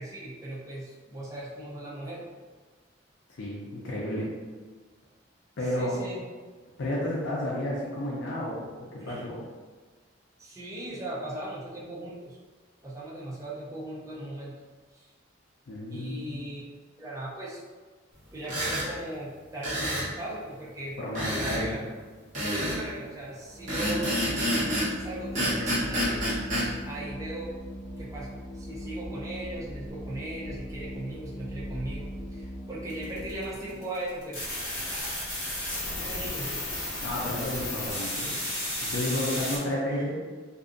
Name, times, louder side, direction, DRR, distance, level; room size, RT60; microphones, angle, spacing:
voice 1, 0.0-2.3 5.8-6.2 9.0-9.3 10.4-12.4 12.8-14.6 14.9-15.1 15.9-16.6 17.0-17.6 18.3-21.9 22.4-24.2 25.0-26.4 26.8-27.5 28.0-34.5 35.9-36.7 39.9-40.1, right 1 dB, 15° right, -7 dB, 0.5 m, -38 dB
voice 2, 3.4-4.3 5.6-6.0 6.8-9.4 15.7-16.4 21.0-21.8 37.0-38.3 38.8-40.2, left 1 dB, 70° left, -5 dB, 0.5 m, -31 dB
sound 1, 18.4-18.9 19.6-20.1 21.1-21.6 22.3-22.8 23.7-24.9 25.3-26.7, equal, 40° right, 1.0 m, -28 dB
Organ, 23.5-33.8, equal, 15° left, 0.8 m, -39 dB
sound 2, 33.0-39.6, left 1 dB, 35° left, 1.2 m, -33 dB
2.6 x 2.3 x 2.5 m, 1.4 s
head